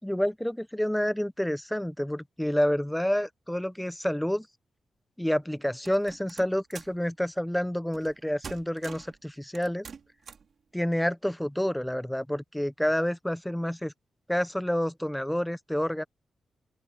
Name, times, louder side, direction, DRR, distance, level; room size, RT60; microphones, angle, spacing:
voice 1, 0.0-4.5 5.2-9.9 10.7-13.9 14.3-16.0, equal, 5° left, 0.5 m, -29 dB
sound 1, 5.8-7.0 7.9-8.2 8.4-9.2 9.5-10.5, right 6 dB, 55° right, 3.3 m, -45 dB
open air
wide cardioid pair, 150°, 0 cm